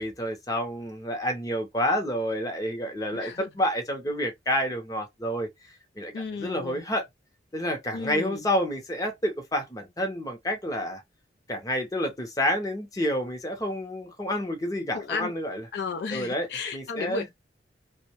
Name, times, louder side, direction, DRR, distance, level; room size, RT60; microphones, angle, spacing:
voice 1, 0.0-5.5 6.0-6.1 6.4-7.1 7.5-11.0 11.5-15.6 16.1-17.3, equal, 20° left, 0.6 m, -29 dB
voice 2, 3.1-3.5 6.1-6.8 7.9-8.4 14.9-15.3 15.7-17.3, left 5 dB, 65° left, 0.3 m, -33 dB
2.6 x 2.1 x 2.8 m
head